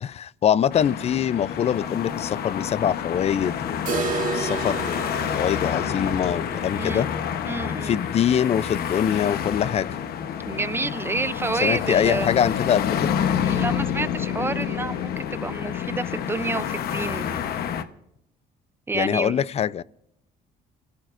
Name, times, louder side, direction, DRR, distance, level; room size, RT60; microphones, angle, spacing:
voice 1, 0.0-7.1 7.8-9.9 11.6-13.1 18.9-19.8, left 9 dB, 40° left, 0.5 m, -24 dB
sound 1, 0.7-17.8, left 9 dB, 65° left, 1.1 m, -28 dB
sound 2, 3.9-9.7 10.0-10.1 10.4-10.5 11.0-11.1 12.0-12.1, right 5 dB, 55° right, 1.9 m, -33 dB
voice 2, 7.5-8.0 10.5-12.3 13.4-17.4 18.9-19.4, right 3 dB, 15° right, 0.6 m, -29 dB
29.0 x 16.0 x 2.6 m
cardioid pair, 110°, 17 cm